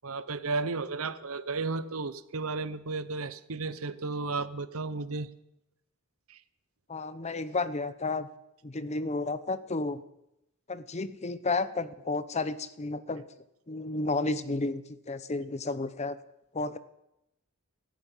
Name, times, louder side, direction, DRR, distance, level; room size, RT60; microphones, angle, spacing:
voice 1, 0.0-5.3 6.3-6.4, right 3 dB, 80° right, 15 dB, 0.9 m, -33 dB
voice 2, 6.9-8.3 8.6-10.0 10.7-13.2 13.7-16.2 16.5-16.8, left 3 dB, 30° left, 14 dB, 0.8 m, -32 dB
17.0 x 14.0 x 5.6 m, 0.84 s
head